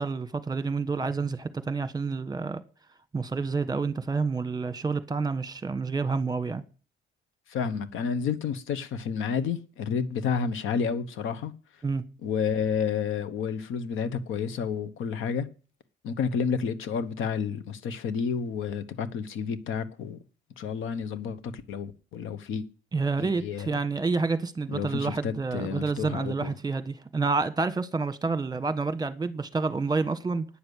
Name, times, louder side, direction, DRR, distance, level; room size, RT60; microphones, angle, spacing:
voice 1, 0.0-2.6 3.1-6.6 11.8-12.0 22.9-30.5, right 4 dB, 20° right, 1.3 m, -29 dB
voice 2, 7.5-11.5 12.2-15.5 16.0-20.2 20.6-22.6 23.2-23.7 24.7-26.5, left 6 dB, 85° left, 1.2 m, -30 dB
9.8 x 6.9 x 8.2 m
cardioid pair, 90°, 20 cm